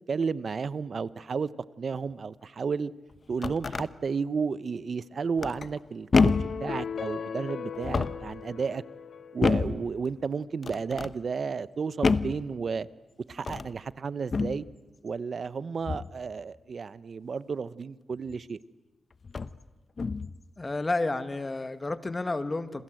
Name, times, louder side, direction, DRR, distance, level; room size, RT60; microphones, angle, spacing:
voice 1, 0.1-1.5 1.8-2.9 3.3-8.8 9.3-12.9 13.3-14.6 15.0-18.6, right 5 dB, 60° right, 17 dB, 0.9 m, -32 dB
sound 1, 3.1-3.9 5.4-5.8 6.1-6.6 7.7-8.3 9.4-9.8 10.6-11.1 12.0-12.4 13.4-13.8 14.3-14.6 15.9-16.2 18.3-18.4 19.2-19.6 20.0-20.4, left 4 dB, 50° left, 1.0 m, -27 dB
sound 2, 6.1-9.6, left 6 dB, 70° left, 0.9 m, -37 dB
voice 2, 20.6-22.8, left 2 dB, 30° left, 11 dB, 1.9 m, -31 dB
27.5 x 27.0 x 7.8 m, 1.1 s
cardioid pair, 65°, 0 cm